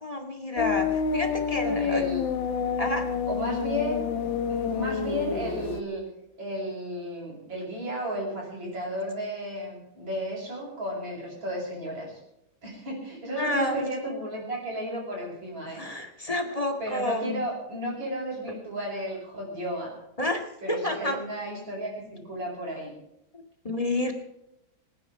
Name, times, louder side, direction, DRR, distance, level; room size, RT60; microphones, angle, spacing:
voice 1, 0.0-2.0 2.8-3.1 13.4-13.9 15.7-17.4 20.2-21.2 23.3-24.1, left 1 dB, 20° left, 4 dB, 1.9 m, -30 dB
sound 1, 0.6-5.8, left 6 dB, 70° left, 2.0 m, -28 dB
voice 2, 1.6-2.2 3.3-6.0 6.4-12.2 12.6-15.8 16.2-16.3 16.8-19.9 20.6-22.9, equal, 70° right, -8 dB, 6.2 m, -33 dB
25.5 x 10.0 x 4.8 m, 0.84 s
omnidirectional pair, 2.1 m